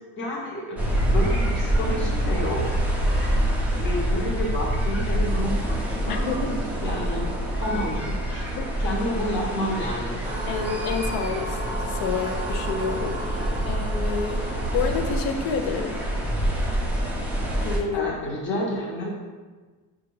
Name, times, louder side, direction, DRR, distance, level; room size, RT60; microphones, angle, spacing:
voice 1, 0.2-0.8 1.1-3.3 3.6-6.4 6.8-7.2 7.6-8.4 8.8-10.5 13.3-13.9 17.9-19.1, equal, 35° left, -4 dB, 0.8 m, -30 dB
sound 1, 0.8-17.8, right 1 dB, 5° right, 0.4 m, -26 dB
voice 2, 6.1-6.6 8.5-8.8 10.5-16.0 17.6-18.1, left 5 dB, 85° left, 5 dB, 0.5 m, -29 dB
sound 2, 10.2-15.2, right 1 dB, 20° right, 0.8 m, -34 dB
4.9 x 2.4 x 3.1 m, 1.4 s
cardioid pair, 160°, 36 cm